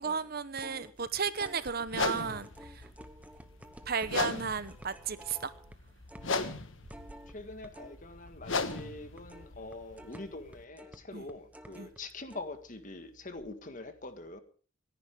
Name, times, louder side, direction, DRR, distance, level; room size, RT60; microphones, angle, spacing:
voice 1, 0.0-2.9 3.9-5.5 11.1-11.2 11.8-11.9, right 6 dB, 45° right, 0.9 m, -34 dB
sound 1, 0.5-8.0 8.3-12.0 12.3-12.4, right 1 dB, 5° right, 1.0 m, -51 dB
sound 2, 1.9-10.6, left 4 dB, 65° left, 1.4 m, -38 dB
voice 2, 7.3-14.4, left 2 dB, 40° left, 1.7 m, -44 dB
27.0 x 10.5 x 3.6 m
head